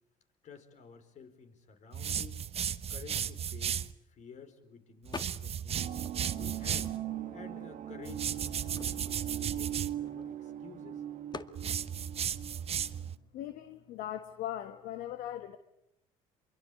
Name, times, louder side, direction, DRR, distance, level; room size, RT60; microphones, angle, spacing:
voice 1, 0.4-2.5 2.9-5.9 6.3-6.9 7.3-11.0, left 6 dB, 55° left, 9 dB, 4.6 m, -52 dB
sound 1, 1.9-3.9 5.1-7.0 8.1-9.9 11.6-13.2, right 8 dB, 45° right, 1.1 m, -35 dB
sound 2, 5.1-5.7 6.0-7.3 7.9-8.0 8.2-10.5 11.3-11.6, left 4 dB, 30° left, 1.9 m, -46 dB
sound 3, 5.7-13.1, right 11 dB, 60° right, 2.2 m, -40 dB
voice 2, 13.3-15.6, left 12 dB, 75° left, 9 dB, 1.4 m, -39 dB
27.0 x 23.0 x 8.5 m, 0.81 s
supercardioid pair, 90°, 15 cm